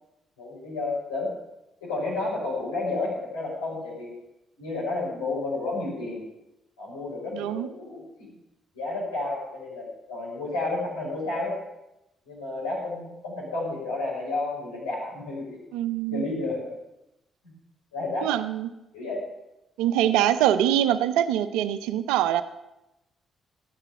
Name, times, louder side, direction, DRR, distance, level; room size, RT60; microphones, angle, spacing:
voice 1, 0.4-1.3 1.8-4.1 4.6-6.2 6.8-8.3 8.7-11.5 12.3-15.6 16.1-16.7 17.9-18.3 18.9-19.2, left 2 dB, 90° left, -6 dB, 6.0 m, -31 dB
voice 2, 7.3-7.7 15.7-16.3 18.2-18.7 19.8-22.4, right 11 dB, 75° right, 12 dB, 0.6 m, -24 dB
13.5 x 8.9 x 7.2 m, 0.92 s
hypercardioid pair, 45°, 0 cm